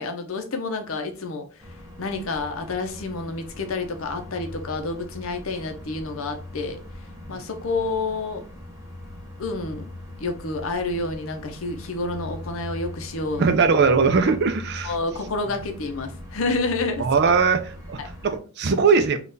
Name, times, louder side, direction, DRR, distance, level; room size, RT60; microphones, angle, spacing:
voice 1, 0.0-1.5 2.0-6.8 7.3-8.4 9.4-9.9 10.2-13.4 14.8-17.1 18.0-18.1, left 3 dB, 70° left, 0.6 m, -29 dB
sound 1, 1.6-18.4, left 1 dB, 15° right, 0.8 m, -40 dB
voice 2, 13.4-14.9 17.0-19.2, right 5 dB, 50° right, 0.4 m, -20 dB
3.7 x 2.4 x 2.6 m
head